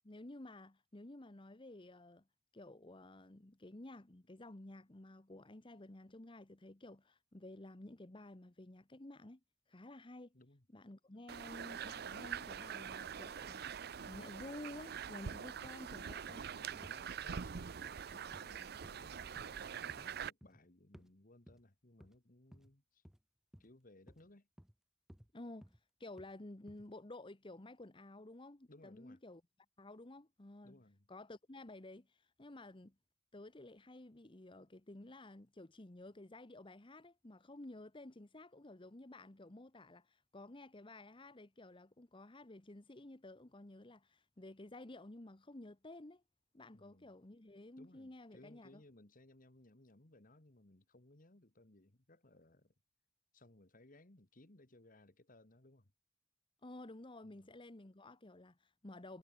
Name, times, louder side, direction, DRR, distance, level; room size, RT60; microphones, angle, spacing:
voice 1, 0.0-2.2 2.5-9.4 9.7-10.3 10.7-16.4 25.3-29.4 29.8-30.8 31.1-32.9 33.3-46.2 46.5-48.8 56.6-59.2, left 2 dB, 25° left, 1.1 m, -53 dB
voice 2, 10.3-10.7 16.5-23.0 23.6-24.5 28.7-29.2 30.6-31.1 46.7-47.1 47.8-52.7 53.3-55.9 57.2-57.5, left 1 dB, 45° left, 1.9 m, -63 dB
sound 1, 11.3-20.3, right 7 dB, 55° right, 0.5 m, -45 dB
sound 2, 16.3-16.5 16.8-17.0 17.3-17.5 17.8-18.0 18.3-18.5 18.8-19.0 19.4-19.6 19.9-20.0 20.4-20.6 20.9-21.1 21.5-21.6 22.0-22.2 22.5-22.7 23.0-23.2 23.5-23.7 24.1-24.3 24.6-24.7 25.1-25.3 25.6-25.8 26.2-26.3 26.7-26.8, equal, 5° right, 0.7 m, -59 dB
head